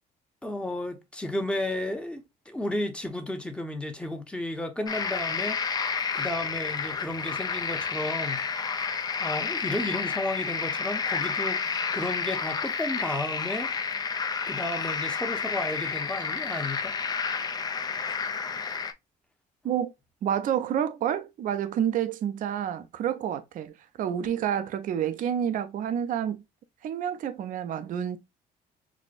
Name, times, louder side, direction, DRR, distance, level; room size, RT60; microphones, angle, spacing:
voice 1, 0.4-8.4 8.7-13.7 14.5-16.9, left 1 dB, 5° left, 0.8 m, -33 dB
sound 1, 4.9-18.9, left 5 dB, 25° left, 0.5 m, -30 dB
voice 2, 20.2-26.4 26.8-28.2, right 9 dB, 55° right, 0.5 m, -29 dB
6.1 x 2.1 x 2.4 m
cardioid pair, 110°, 17 cm